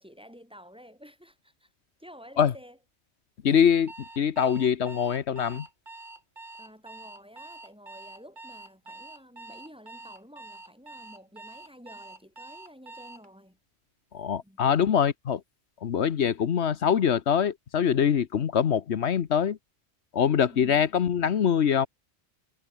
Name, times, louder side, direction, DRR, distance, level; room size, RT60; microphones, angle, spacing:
voice 1, 0.0-1.7 2.0-2.8 6.6-13.6 14.4-14.6 20.5-20.8, equal, 5° right, 4.8 m, -51 dB
voice 2, 3.4-5.7 14.1-15.4 15.8-19.6 20.1-21.9, left 8 dB, 80° left, 1.2 m, -24 dB
Alarm, 3.9-13.3, right 2 dB, 45° right, 2.9 m, -46 dB
omnidirectional pair, 1.1 m